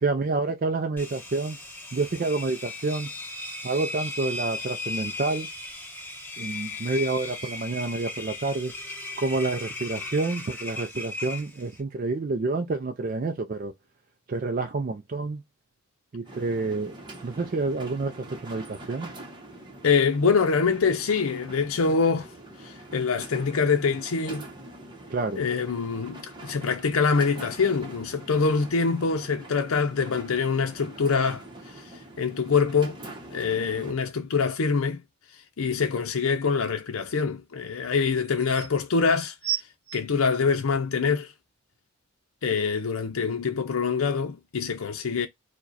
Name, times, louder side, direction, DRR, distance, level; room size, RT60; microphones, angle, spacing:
voice 1, 0.0-1.6 1.9-3.1 3.6-5.5 6.4-8.7 9.2-13.7 14.3-15.4 16.1-17.0 17.2-19.1 25.1-25.4, right 3 dB, 40° right, 0.4 m, -28 dB
Engine, 1.0-11.8, left 2 dB, 10° left, 1.4 m, -37 dB
sound 1, 16.2-33.9, right 1 dB, 20° right, 0.9 m, -44 dB
voice 2, 19.8-22.3 22.6-24.4 25.4-31.4 32.2-33.0 33.3-35.0 35.6-39.3 39.9-41.3 42.4-45.3, left 5 dB, 75° left, 0.6 m, -25 dB
sound 2, 38.2-38.7 39.4-41.0 41.7-41.8, right 12 dB, 90° right, 0.6 m, -33 dB
4.7 x 2.2 x 4.0 m
head